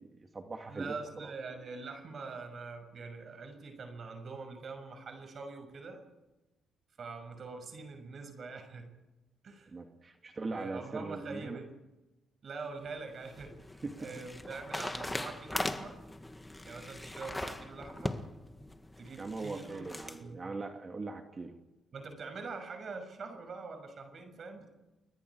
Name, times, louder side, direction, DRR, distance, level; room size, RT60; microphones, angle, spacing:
voice 1, 0.0-1.3 9.7-11.6 13.8-14.0 19.2-21.6, right 3 dB, 30° right, 3 dB, 2.5 m, -41 dB
voice 2, 0.7-6.0 7.0-9.0 9.4-9.7 10.4-11.8 12.4-13.7 14.0-16.0 16.6-18.2 19.0-19.9 20.2-20.4 21.9-24.7, right 4 dB, 50° right, 5 dB, 6.4 m, -44 dB
sound 1, 12.9-20.2, left 1 dB, 10° left, 1.8 m, -40 dB
30.0 x 22.0 x 4.9 m, 1.0 s
cardioid pair, 90°, 0 cm